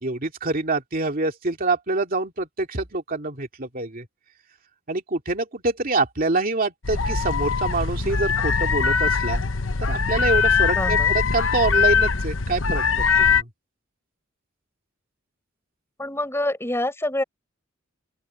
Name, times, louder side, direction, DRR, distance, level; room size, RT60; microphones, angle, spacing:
voice 1, 0.0-4.0 4.9-9.4 9.8-12.8 13.2-13.4, right 3 dB, 45° right, 2.6 m, -26 dB
sound 1, 6.8-13.4, left 5 dB, 75° left, 1.0 m, -21 dB
voice 2, 10.7-11.1 16.0-17.2, left 1 dB, 15° left, 6.3 m, -26 dB
open air
head